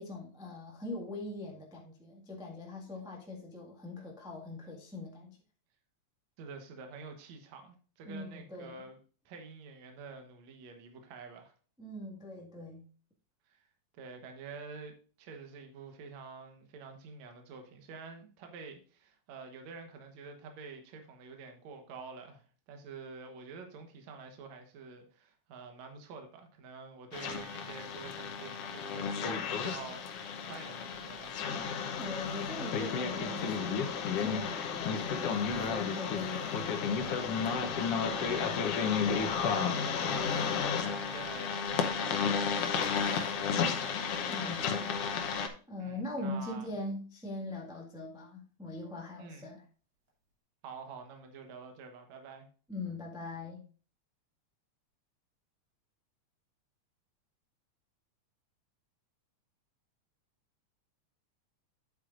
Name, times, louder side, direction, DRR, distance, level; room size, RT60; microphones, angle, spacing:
voice 1, 0.0-5.4 8.0-8.8 11.8-12.9 32.0-37.0 44.3-45.0 45.7-49.6 52.7-53.6, left 2 dB, ahead, -2 dB, 1.0 m, -42 dB
voice 2, 6.4-9.0 9.3-11.5 13.5-13.7 13.9-31.5 38.1-43.9 45.8-46.7 49.2-49.6 50.6-52.5, right 5 dB, 70° right, 4 dB, 2.5 m, -48 dB
sound 1, 27.1-45.5, left 6 dB, 65° left, 1.8 m, -32 dB
Camera, 42.5-43.4 50.1-50.2, right 2 dB, 40° right, 3.4 m, -55 dB
9.9 x 8.2 x 2.5 m, 0.38 s
omnidirectional pair, 3.4 m